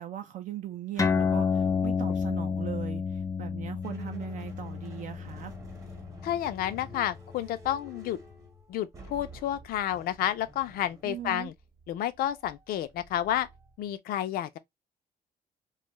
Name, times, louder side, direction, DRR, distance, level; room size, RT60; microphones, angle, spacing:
voice 1, 0.0-5.5 11.0-11.5, right 11 dB, 55° right, 0.4 m, -39 dB
sound 1, 1.0-7.9, left 5 dB, 20° left, 0.4 m, -31 dB
sound 2, 3.8-13.9, right 1 dB, 20° right, 0.8 m, -51 dB
voice 2, 6.2-8.2 8.7-11.5 11.9-13.5 13.8-14.5, left 12 dB, 80° left, 0.5 m, -30 dB
2.6 x 2.3 x 3.0 m
cardioid pair, 160°, 15 cm